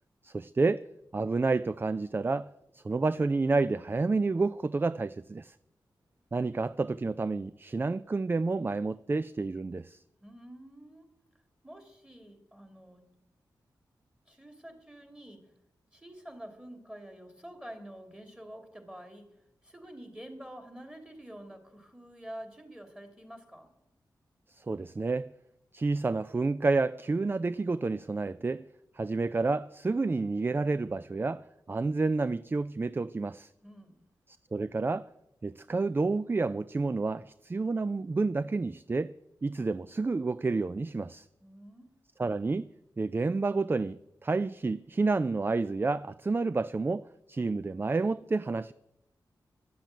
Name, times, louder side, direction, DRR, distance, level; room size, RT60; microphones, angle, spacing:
voice 1, 0.2-0.9 1.1-2.5 2.7-5.6 6.3-10.0 24.5-25.3 25.7-28.6 28.9-33.5 34.5-35.1 35.4-39.1 39.4-41.3 42.2-42.7 43.0-48.7, right 3 dB, 30° right, 0.4 m, -29 dB
voice 2, 10.2-11.0 11.6-13.1 14.3-15.5 15.9-19.3 19.6-23.7 33.6-34.0 41.4-41.9, right 1 dB, 15° right, 2.9 m, -47 dB
12.0 x 7.6 x 9.0 m
cardioid pair, 60°, 8 cm